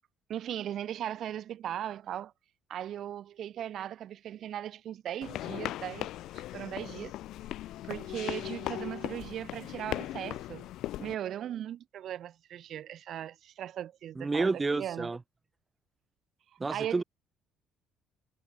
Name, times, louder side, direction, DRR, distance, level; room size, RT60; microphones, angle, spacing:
voice 1, 0.3-2.3 2.7-6.1 6.3-7.1 7.8-10.7 11.0-15.1 16.7-17.0, right 11 dB, 60° right, 3.9 m, -38 dB
sound 1, 5.2-11.1, left 14 dB, 75° left, 6.8 m, -38 dB
voice 2, 14.2-15.2 16.6-17.0, right 3 dB, 20° right, 2.3 m, -30 dB
cardioid pair, 110°, 0 cm